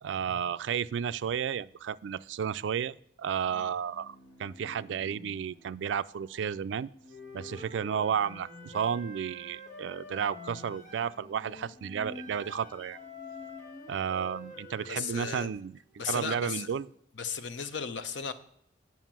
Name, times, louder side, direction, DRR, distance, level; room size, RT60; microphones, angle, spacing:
voice 1, 0.0-6.9 7.3-13.0 13.9-16.9, right 7 dB, 75° right, 17 dB, 0.3 m, -32 dB
Bowed string instrument, 3.8-15.5 15.8-16.6, left 2 dB, 20° left, 1.5 m, -52 dB
Wind instrument woodwind instrument, 7.1-11.2 12.1-15.5, left 2 dB, 45° left, 1.6 m, -47 dB
voice 2, 14.9-15.5 16.0-16.7 17.2-18.3, left 6 dB, 75° left, 11 dB, 0.7 m, -35 dB
9.2 x 5.9 x 7.4 m, 0.70 s
head